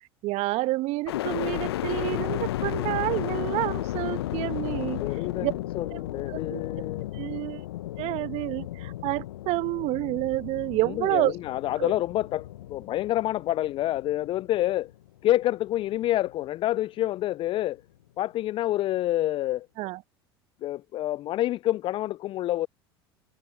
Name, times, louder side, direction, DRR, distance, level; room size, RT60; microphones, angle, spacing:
voice 1, 0.2-5.0 5.4-5.5 6.3-6.6 7.1-7.6 8.0-11.3 11.8-11.9 19.8-20.0, right 20 dB, 55° right, 1.4 m, -29 dB
sound 1, 1.1-15.1 15.6-16.3, left 14 dB, 75° left, 1.0 m, -34 dB
voice 2, 5.0-7.1 10.8-14.9 15.2-17.8 18.2-19.7 20.6-22.7, left 14 dB, 40° left, 0.4 m, -28 dB
figure-of-eight pair, 75°, 13 cm